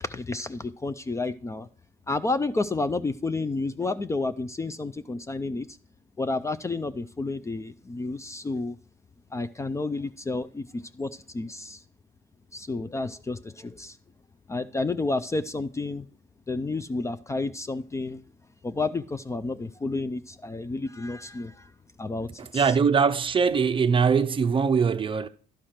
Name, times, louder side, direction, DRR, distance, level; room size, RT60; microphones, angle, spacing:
voice 1, 0.0-1.7 2.1-5.8 6.2-8.8 9.3-11.8 12.5-14.0 14.5-16.1 16.5-18.2 18.6-21.7 22.0-22.7, left 3 dB, 15° left, 0.4 m, -31 dB
voice 2, 22.5-25.3, right 6 dB, 30° right, 0.5 m, -22 dB
11.5 x 4.8 x 5.8 m
cardioid pair, 110°, 17 cm